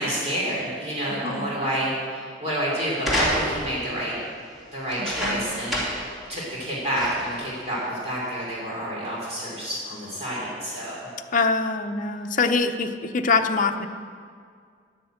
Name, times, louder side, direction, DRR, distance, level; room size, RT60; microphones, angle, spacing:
voice 1, 0.0-4.1 4.7-11.0, right 1 dB, 35° right, -6 dB, 3.2 m, -29 dB
sound 1, 3.0-3.8 4.9-6.1 6.5-6.6 6.9-7.4 8.2-8.3, equal, ahead, 2.9 m, -27 dB
voice 2, 5.0-5.5 11.3-13.9, left 4 dB, 45° left, 6 dB, 0.7 m, -24 dB
10.5 x 10.0 x 7.8 m, 2.1 s
head